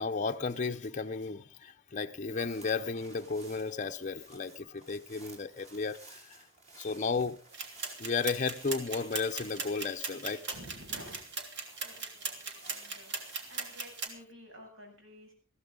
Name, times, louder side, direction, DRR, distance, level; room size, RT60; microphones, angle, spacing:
voice 1, 0.0-6.5 6.8-7.4 8.0-10.4, left 4 dB, 40° left, 0.7 m, -34 dB
sound 1, 2.1-14.0, right 2 dB, 35° right, 4.5 m, -56 dB
sound 2, 7.5-14.1, right 4 dB, 60° right, 3.0 m, -39 dB
voice 2, 10.5-11.2 11.5-13.2 13.4-15.3, equal, 75° right, 7.7 m, -52 dB
21.0 x 15.0 x 3.8 m
head